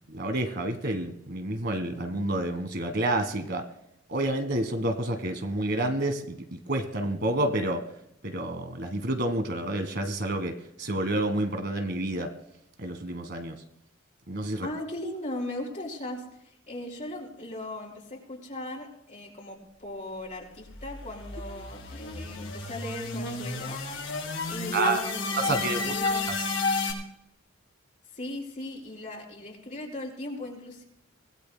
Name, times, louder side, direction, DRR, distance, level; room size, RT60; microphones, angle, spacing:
voice 1, 0.1-3.6 4.1-7.8 8.2-12.3 12.8-13.5 14.3-14.7 24.7-25.0 25.4-25.9 26.3-26.5, right 1 dB, 50° right, 7 dB, 1.5 m, -29 dB
voice 2, 14.6-23.8 24.5-26.3 28.1-30.8, left 1 dB, 40° left, -2 dB, 5.0 m, -38 dB
sound 1, 20.5-26.9, left 3 dB, 65° left, 5.2 m, -31 dB
24.5 x 18.0 x 2.2 m, 0.78 s
head